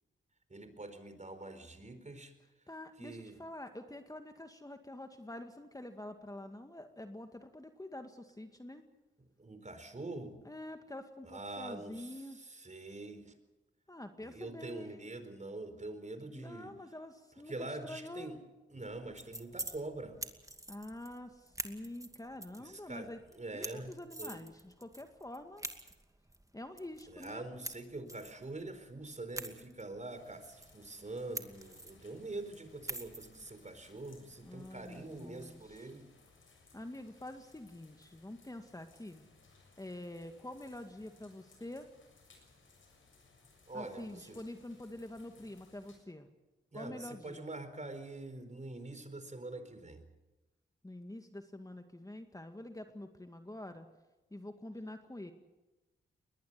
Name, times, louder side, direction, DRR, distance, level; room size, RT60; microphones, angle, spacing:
voice 1, 0.5-2.3 3.0-3.4 9.4-10.4 11.2-13.3 14.2-16.7 17.5-18.4 18.7-20.2 22.6-23.1 23.3-23.9 24.2-24.4 27.1-36.1 43.7-44.4 46.7-50.0, right 2 dB, 35° right, 9 dB, 4.3 m, -44 dB
voice 2, 2.7-8.8 10.5-12.4 13.9-15.1 16.3-17.6 17.8-18.3 20.7-23.2 23.5-25.6 26.5-27.5 34.4-35.9 36.7-39.3 39.8-41.9 43.7-46.3 46.7-47.6 50.8-53.9 54.3-55.3, left 1 dB, 15° left, 6 dB, 2.1 m, -47 dB
sound 1, 18.9-35.8, right 1 dB, 15° right, 2.4 m, -48 dB
sound 2, 30.1-46.0, left 4 dB, 70° left, 7.0 m, -64 dB
21.5 x 19.5 x 8.5 m, 1.0 s
supercardioid pair, 45°, 21 cm